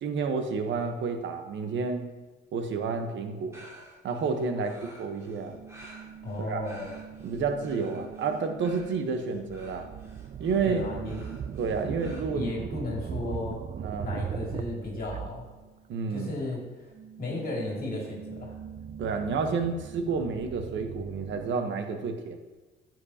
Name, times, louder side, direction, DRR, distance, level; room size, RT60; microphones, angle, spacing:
voice 1, 0.0-2.1 2.5-3.6 4.0-5.6 6.4-6.6 7.2-9.9 10.4-10.8 11.6-12.5 13.8-14.1 15.9-16.3 19.0-22.4, right 5 dB, 70° right, 6 dB, 1.1 m, -30 dB
sound 1, 3.5-12.2, right 1 dB, 15° right, 2.1 m, -52 dB
sound 2, 5.3-16.0 16.3-21.5, right 8 dB, 40° right, 0.4 m, -40 dB
voice 2, 6.2-6.9 10.6-11.2 12.1-13.6 14.0-15.5 16.1-16.6 17.2-18.5, left 2 dB, 50° left, -2 dB, 2.4 m, -34 dB
10.0 x 7.6 x 2.9 m, 1.3 s
cardioid pair, 90°, 20 cm